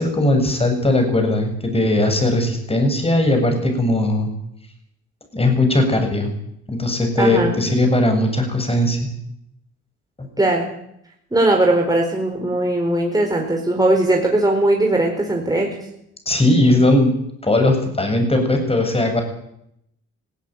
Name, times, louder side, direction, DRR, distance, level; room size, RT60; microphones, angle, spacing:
voice 1, 0.0-4.3 5.3-6.3 6.7-9.1 16.3-17.1 17.4-19.2, left 1 dB, 20° left, 5 dB, 7.7 m, -18 dB
voice 2, 7.2-7.6 10.4-10.7 11.3-15.8, right 2 dB, 10° right, 1 dB, 4.6 m, -19 dB
18.5 x 17.0 x 9.2 m, 0.76 s
cardioid pair, 90°, 30 cm